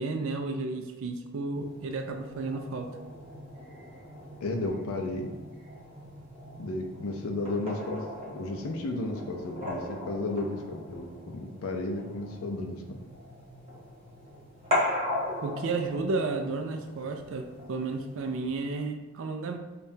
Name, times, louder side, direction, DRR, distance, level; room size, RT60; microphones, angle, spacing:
voice 1, 0.0-2.9 15.4-19.6, right 3 dB, 60° right, 6 dB, 0.3 m, -32 dB
sound 1, 1.5-18.6, left 1 dB, 25° right, 1.0 m, -38 dB
voice 2, 4.4-5.3 6.6-13.0, left 2 dB, 65° left, 2 dB, 0.4 m, -33 dB
5.4 x 2.3 x 2.6 m, 1.2 s
head